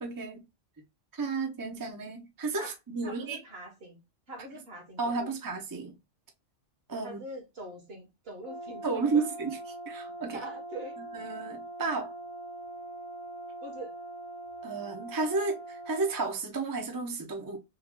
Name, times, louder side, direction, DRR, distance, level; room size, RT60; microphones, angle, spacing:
voice 1, 0.0-0.4 1.1-3.4 5.0-6.0 6.9-7.2 8.8-9.6 9.9-10.4 11.1-12.1 14.6-17.6, right 4 dB, 25° right, 0.6 m, -32 dB
voice 2, 3.0-4.0 4.3-5.3 7.0-9.3 10.3-11.0 13.6-13.9, right 1 dB, 55° right, 1.3 m, -43 dB
Brass instrument, 8.4-16.2, right 2 dB, 45° left, 0.4 m, -42 dB
3.2 x 2.3 x 3.6 m
omnidirectional pair, 1.3 m